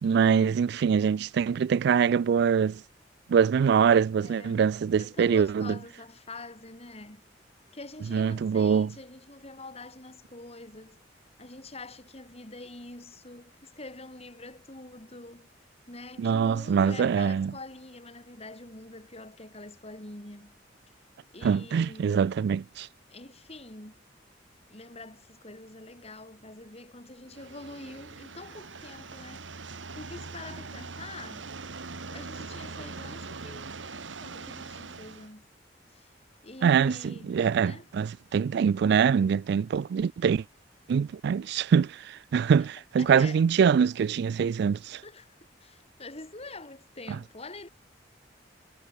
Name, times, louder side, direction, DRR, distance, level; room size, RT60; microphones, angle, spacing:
voice 1, 0.0-2.8 3.3-5.8 8.1-8.9 16.2-17.5 21.4-22.9 36.6-40.4 40.9-45.0, right 7 dB, 65° right, 0.3 m, -24 dB
voice 2, 4.2-4.6 5.0-7.2 7.7-11.0 11.4-15.5 15.9-20.5 21.3-22.3 23.1-24.0 24.7-29.4 29.9-31.5 32.1-35.5 35.9-36.1 36.4-37.9 42.3-42.7 43.0-43.5 45.0-47.7, left 2 dB, 35° left, 5.6 m, -45 dB
sound 1, 27.3-35.3, right 4 dB, 85° right, 1.6 m, -42 dB
head